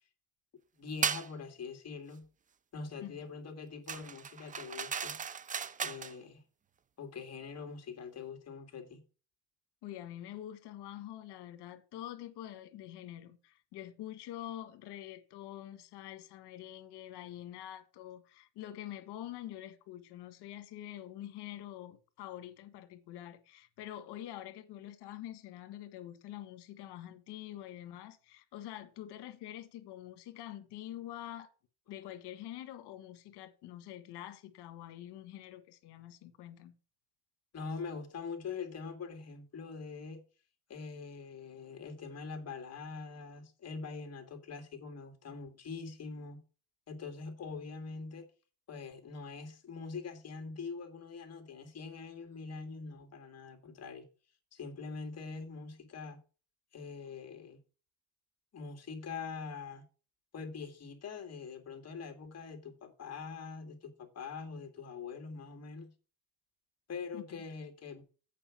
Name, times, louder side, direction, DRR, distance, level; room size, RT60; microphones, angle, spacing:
voice 1, 0.7-2.3 2.7-5.2 5.8-6.4 7.0-9.0 37.5-40.2 40.7-46.4 46.9-48.2 48.7-54.1 54.5-56.2 56.7-57.6 58.5-59.9 60.3-65.9 66.9-68.0, left 5 dB, 40° left, 2.4 m, -43 dB
sound 1, 1.0-1.3 3.9-6.1, right 7 dB, 20° right, 0.4 m, -36 dB
voice 2, 9.8-31.5 31.9-36.7 67.1-67.4, left 12 dB, 75° left, 1.6 m, -46 dB
8.5 x 5.0 x 7.3 m
cardioid pair, 125°, 40 cm